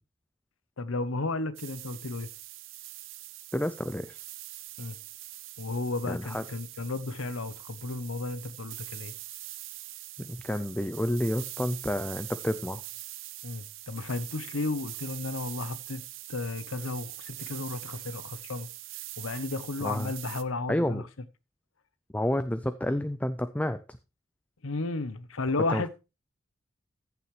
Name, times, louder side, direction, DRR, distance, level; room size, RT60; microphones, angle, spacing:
voice 1, 0.8-2.3 4.8-5.0 5.6-9.1 13.4-16.0 16.3-18.7 19.2-21.0 24.6-25.9, left 3 dB, 85° left, 0.9 m, -33 dB
sound 1, 1.6-20.4, right 16 dB, 70° right, 0.7 m, -43 dB
voice 2, 3.5-4.2 6.1-6.4 10.2-12.8 19.8-20.1 20.7-21.0 22.1-23.8 25.7-25.9, left 1 dB, 5° left, 0.4 m, -30 dB
14.5 x 7.0 x 3.2 m
head